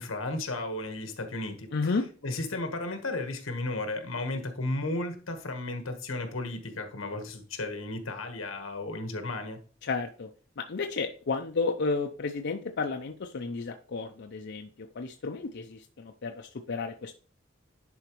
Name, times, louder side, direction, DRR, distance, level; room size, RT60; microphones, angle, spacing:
voice 1, 0.0-1.7 2.2-9.6, left 2 dB, 90° left, 1.3 m, -34 dB
voice 2, 1.7-2.0 9.8-10.3 10.6-17.1, left 4 dB, 60° left, 0.6 m, -32 dB
10.5 x 4.4 x 3.0 m
head